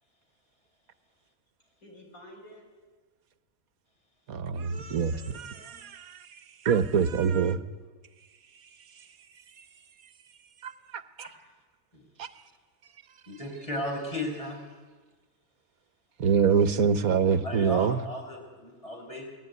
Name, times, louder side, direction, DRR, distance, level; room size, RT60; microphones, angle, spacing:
voice 1, 1.8-2.7 5.0-5.8 16.9-17.4, left 1 dB, 85° left, 2 dB, 6.2 m, -52 dB
voice 2, 4.3-5.1 5.4-7.6 9.6-9.7 10.6-11.3 12.2-12.3 16.2-18.0, right 6 dB, 85° right, 12 dB, 1.6 m, -25 dB
voice 3, 13.3-14.6 17.4-19.4, left 1 dB, 25° left, 2 dB, 5.4 m, -35 dB
28.5 x 19.0 x 9.6 m, 1.4 s
omnidirectional pair, 1.5 m